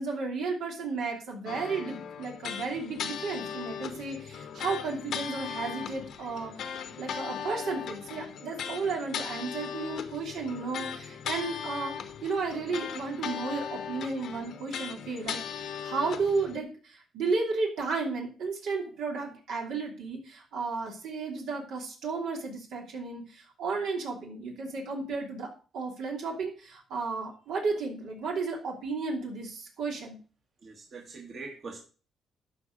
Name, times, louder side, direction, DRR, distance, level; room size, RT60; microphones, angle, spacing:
voice 1, 0.0-11.9 12.2-30.2, right 4 dB, 80° right, 0 dB, 2.9 m, -33 dB
sound 1, 1.5-16.6, left 8 dB, 75° left, 1.0 m, -38 dB
voice 2, 30.6-31.8, right 4 dB, 50° right, 1 dB, 1.9 m, -42 dB
12.0 x 4.5 x 5.4 m, 0.38 s
cardioid pair, 90°, 0 cm